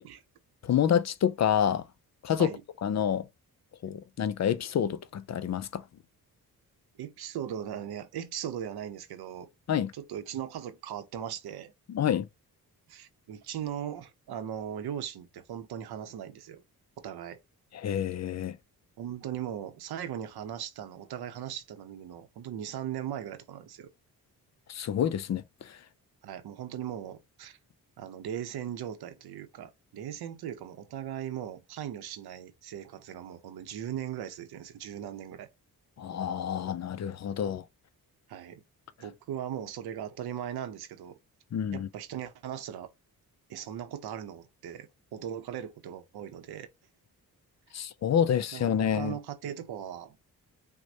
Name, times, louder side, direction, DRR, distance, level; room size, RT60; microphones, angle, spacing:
voice 1, 0.6-1.8 2.2-2.5 2.8-3.3 3.8-5.8 9.7-9.9 11.9-12.3 17.7-18.6 24.7-25.8 36.0-37.6 41.5-41.9 47.7-49.1, left 9 dB, 45° left, 0.5 m, -28 dB
voice 2, 7.0-9.5 9.9-11.7 12.9-16.6 17.0-17.4 19.0-23.9 26.2-27.6 28.0-35.5 38.3-38.6 39.0-41.2 41.7-42.9 43.5-46.7 48.5-50.2, right 10 dB, 90° right, 0.8 m, -38 dB
6.1 x 2.2 x 2.7 m
cardioid pair, 90°, 37 cm